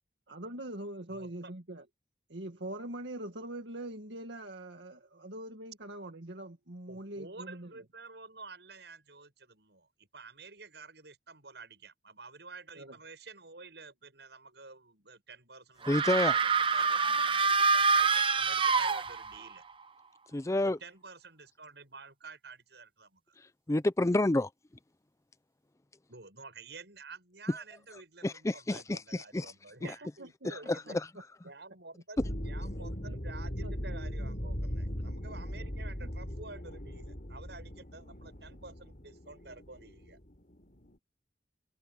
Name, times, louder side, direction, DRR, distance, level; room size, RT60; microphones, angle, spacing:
voice 1, 0.3-1.8 2.3-7.7 12.8-13.0 29.8-30.5 30.9-31.0 33.0-33.2 33.6-33.7 36.0-36.1, right 1 dB, 90° right, 2.0 m, -43 dB
voice 2, 6.9-19.6 20.6-23.3 26.1-31.0 31.4-40.2, right 3 dB, 70° right, 7.7 m, -50 dB
sound 1, 15.8-19.5, right 4 dB, 30° right, 0.8 m, -26 dB
voice 3, 15.9-16.4 20.3-20.8 23.7-24.5 28.2-29.5 30.4-31.1, left 1 dB, 15° left, 0.5 m, -29 dB
sound 2, 32.2-41.0, equal, 45° left, 5.4 m, -39 dB
head